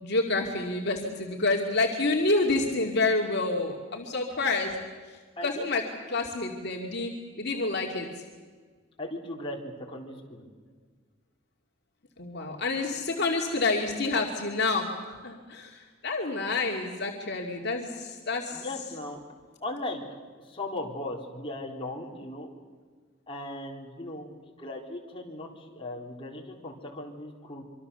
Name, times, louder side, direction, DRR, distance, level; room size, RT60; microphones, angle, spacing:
voice 1, 0.0-4.8 5.4-5.8 6.1-7.1 7.4-8.1 12.2-18.6, left 3 dB, 55° left, 0 dB, 2.5 m, -28 dB
voice 2, 9.0-10.5 18.5-19.2 19.6-20.0 20.4-22.5 23.3-27.6, left 1 dB, 25° left, -1 dB, 3.8 m, -38 dB
25.5 x 25.0 x 7.0 m, 1.5 s
head